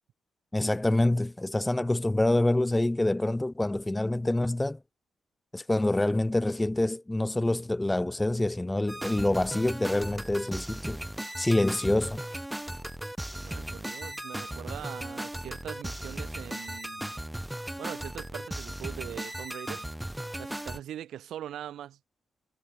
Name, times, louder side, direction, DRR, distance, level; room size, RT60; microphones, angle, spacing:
voice 1, 0.5-4.8 5.5-11.0 11.4-12.2, left 1 dB, 10° left, 0.4 m, -26 dB
sound 1, 8.9-20.8, right 1 dB, 5° right, 1.1 m, -37 dB
voice 2, 13.4-17.2 17.8-19.9 20.4-22.0, right 11 dB, 75° right, 2.8 m, -42 dB
cardioid pair, 120°, 0 cm